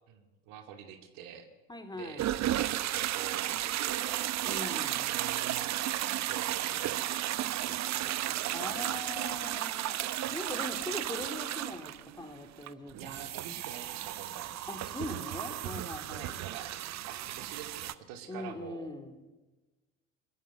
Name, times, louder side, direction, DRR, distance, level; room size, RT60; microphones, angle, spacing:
voice 1, 0.1-1.5 1.9-4.3 5.1-5.9 6.2-9.4 13.0-14.5 16.1-16.7 17.1-19.0, right 8 dB, 65° right, 6 dB, 2.7 m, -47 dB
voice 2, 1.7-2.3 4.4-5.1 8.5-10.0 10.3-13.2 14.7-16.4 18.3-19.2, left 2 dB, 10° left, 6 dB, 3.4 m, -41 dB
sound 1, 2.2-17.9, right 13 dB, 45° right, 1.0 m, -34 dB
21.0 x 14.5 x 9.4 m, 1.2 s
hypercardioid pair, 70°, 37 cm